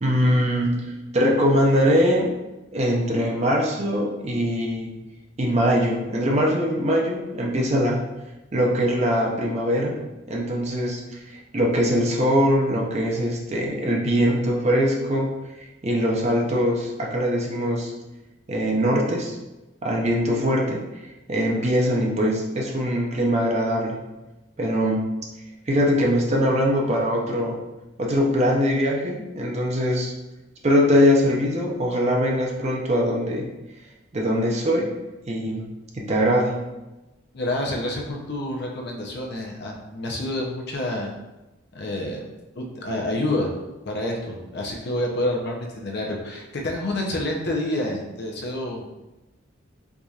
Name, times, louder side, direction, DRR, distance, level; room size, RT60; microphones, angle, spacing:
voice 1, 0.0-2.3 2.7-4.9 5.4-8.0 8.5-10.0 10.3-11.2 11.5-15.3 15.8-17.9 18.5-19.4 19.8-20.9 21.3-24.0 24.6-25.2 25.7-27.6 28.0-30.1 30.6-33.5 34.1-34.9 35.3-35.7 35.9-36.7, equal, 35° right, -1 dB, 0.6 m, -22 dB
voice 2, 37.3-41.1 41.7-42.2 42.6-43.5 43.9-49.0, left 1 dB, 55° left, 0 dB, 0.6 m, -28 dB
4.7 x 2.7 x 2.4 m, 1.0 s
head